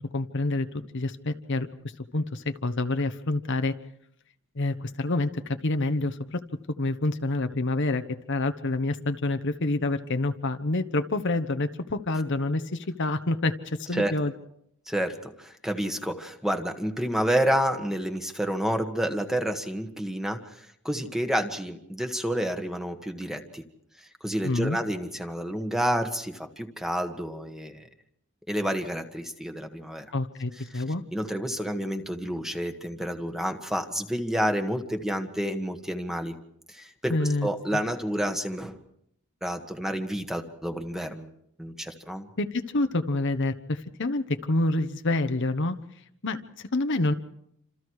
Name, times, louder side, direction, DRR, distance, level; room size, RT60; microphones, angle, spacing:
voice 1, 0.1-0.7 0.9-1.7 2.1-3.7 4.5-6.4 6.8-14.3 24.4-24.8 30.1-31.0 37.1-37.5 42.4-45.8 46.2-47.1, left 2 dB, 55° left, 8 dB, 1.1 m, -27 dB
voice 2, 14.9-23.6 24.0-27.9 28.5-30.0 30.7-30.8 31.1-36.4 36.7-38.8 39.4-41.3 41.6-42.3, equal, ahead, 6 dB, 1.6 m, -29 dB
28.5 x 27.0 x 4.8 m, 0.74 s
head